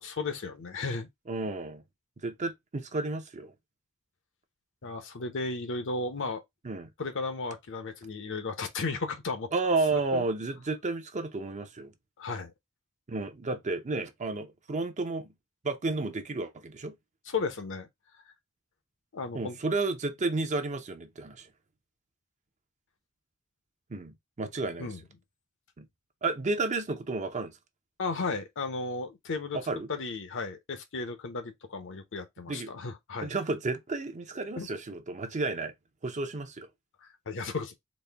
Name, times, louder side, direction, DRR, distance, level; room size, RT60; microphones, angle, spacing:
voice 1, 0.0-1.1 4.8-6.4 7.0-9.5 9.9-10.2 12.2-12.5 17.3-17.9 19.1-19.6 24.8-25.0 28.0-29.6 29.9-33.3 34.6-34.7 37.0-37.7, left 3 dB, 60° left, 0.8 m, -34 dB
voice 2, 1.3-1.8 2.2-3.5 6.6-6.9 9.5-11.9 13.1-15.3 15.6-16.9 19.3-21.5 23.9-24.9 25.8-25.9 26.2-27.5 29.5-29.9 32.5-32.7 33.2-35.7 36.0-36.7, right 3 dB, 35° right, 0.6 m, -32 dB
4.1 x 2.1 x 3.3 m
head